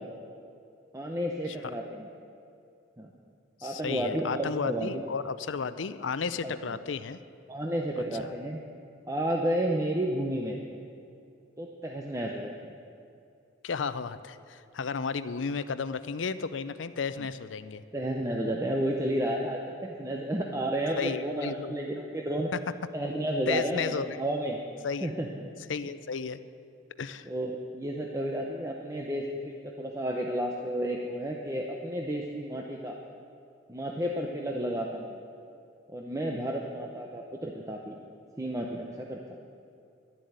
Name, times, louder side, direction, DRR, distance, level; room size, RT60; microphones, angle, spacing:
voice 1, 0.9-2.1 3.0-3.1 3.6-5.0 6.4-6.8 7.5-8.6 9.1-10.6 11.6-12.7 17.2-17.3 17.9-22.5 22.9-24.6 25.0-25.3 27.2-33.0 33.7-35.2 35.9-37.9 38.4-39.2, right 1 dB, 15° right, 0 dB, 0.8 m, -32 dB
voice 2, 3.6-7.2 8.2-8.3 13.6-17.8 21.0-21.8 22.5-22.6 23.5-24.2 24.8-25.1 25.7-26.4 27.0-27.3, left 5 dB, 85° left, 13 dB, 0.6 m, -33 dB
12.0 x 7.6 x 9.4 m, 2.5 s
head